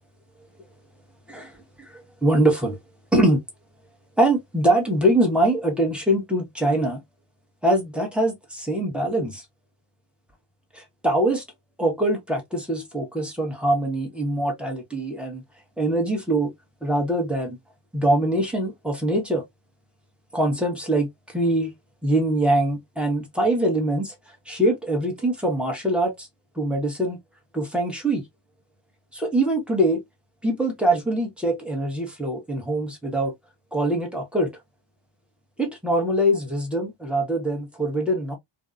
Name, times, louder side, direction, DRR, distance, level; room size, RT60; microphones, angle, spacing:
voice 1, 1.9-2.8 3.1-3.4 4.2-7.0 7.6-9.4 10.7-11.4 11.8-15.4 15.8-16.5 16.8-17.6 17.9-19.4 20.3-21.1 21.3-21.7 22.0-24.1 24.5-26.3 26.6-27.2 27.5-28.2 29.1-30.0 30.4-33.3 33.7-34.5 35.6-38.3, right 1 dB, ahead, 1.0 m, -23 dB
2.7 x 2.3 x 2.3 m
wide cardioid pair, 115°, 47 cm